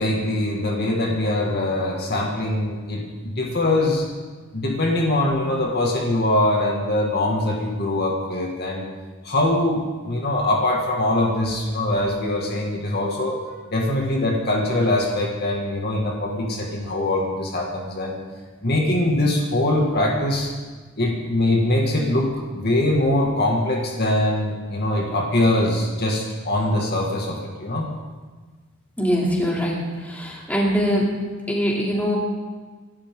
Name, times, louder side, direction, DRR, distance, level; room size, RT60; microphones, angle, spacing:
voice 1, 0.0-4.1 4.5-8.9 9.2-13.4 13.7-18.2 18.6-20.5 21.0-22.3 22.5-27.9, left 1 dB, 50° left, -1 dB, 2.2 m, -22 dB
voice 2, 29.0-31.1 31.5-32.2, equal, 10° left, -4 dB, 3.1 m, -22 dB
26.5 x 12.5 x 3.9 m, 1.4 s
head